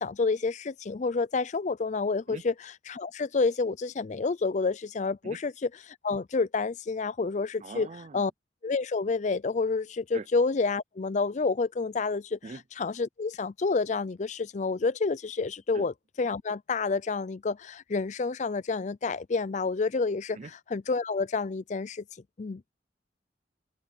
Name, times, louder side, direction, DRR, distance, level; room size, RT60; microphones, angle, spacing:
voice 1, 0.0-7.9 8.1-8.3 8.6-22.0 22.4-22.6, left 4 dB, 40° left, 0.4 m, -29 dB
voice 2, 7.6-8.2 10.1-10.3 12.4-12.6 15.7-15.9 20.4-20.5, right 4 dB, 40° right, 0.4 m, -41 dB
head